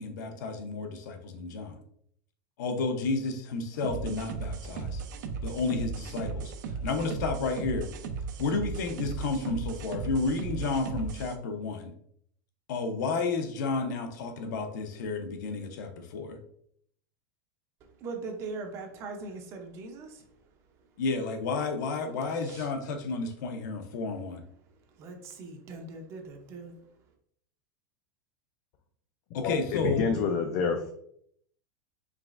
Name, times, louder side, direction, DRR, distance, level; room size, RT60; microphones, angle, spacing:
voice 1, 0.0-1.8 2.6-5.0 5.4-6.5 6.8-7.9 8.4-11.9 12.7-16.4 21.0-24.4 29.3-30.0, left 3 dB, 70° left, 5 dB, 0.7 m, -31 dB
sound 1, 3.8-11.3, right 5 dB, 70° right, 0.6 m, -36 dB
voice 2, 18.0-20.4 22.3-22.7 25.0-26.8, right 3 dB, 25° right, 4 dB, 0.6 m, -41 dB
voice 3, 29.4-30.9, left 5 dB, 35° left, 5 dB, 0.3 m, -28 dB
4.9 x 3.2 x 2.4 m, 0.68 s
supercardioid pair, 175°, 10 cm